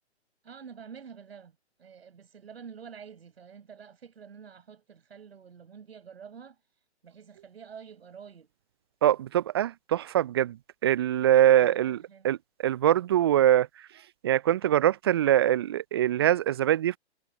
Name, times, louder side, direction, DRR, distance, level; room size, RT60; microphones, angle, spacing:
voice 1, 0.4-6.6 7.0-8.5 11.6-12.3, right 7 dB, 60° right, 7.5 m, -48 dB
voice 2, 9.0-10.6 10.8-12.4 12.6-13.7 14.2-17.0, right 12 dB, 25° right, 0.5 m, -23 dB
figure-of-eight pair, 130°, 34 cm